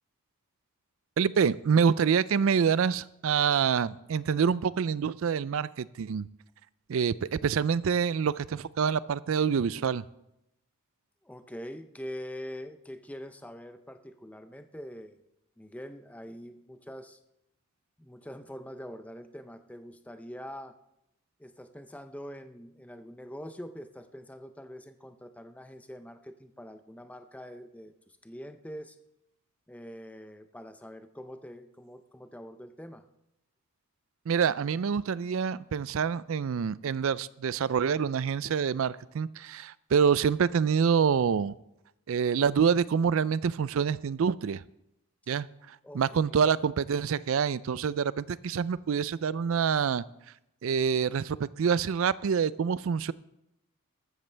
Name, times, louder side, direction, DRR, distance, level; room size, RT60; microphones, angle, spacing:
voice 1, 1.2-6.3 6.9-10.0 34.3-41.6 42.1-44.6 45.3-50.0 50.6-53.1, right 6 dB, 65° right, 18 dB, 0.4 m, -26 dB
voice 2, 11.2-15.2 15.6-17.2 18.0-20.8 21.4-29.0 29.7-33.1 45.8-46.4, equal, 5° left, 9 dB, 0.5 m, -44 dB
14.0 x 13.0 x 3.3 m, 0.85 s
head